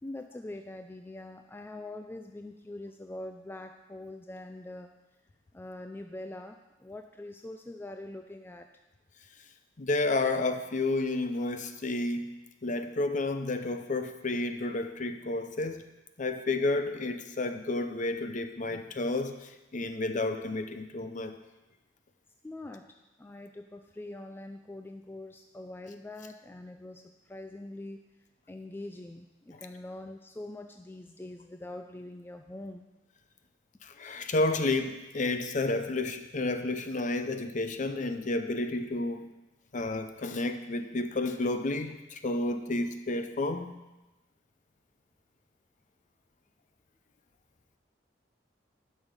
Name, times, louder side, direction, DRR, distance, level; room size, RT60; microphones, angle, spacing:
voice 1, 0.0-4.9 5.5-8.7 22.4-28.0 28.5-32.9, left 1 dB, 10° left, 5 dB, 0.3 m, -43 dB
voice 2, 9.8-12.3 12.6-15.8 16.2-21.3 33.8-39.3 39.7-43.8, left 2 dB, 40° left, 8 dB, 0.7 m, -31 dB
11.0 x 6.3 x 5.2 m, 1.1 s
head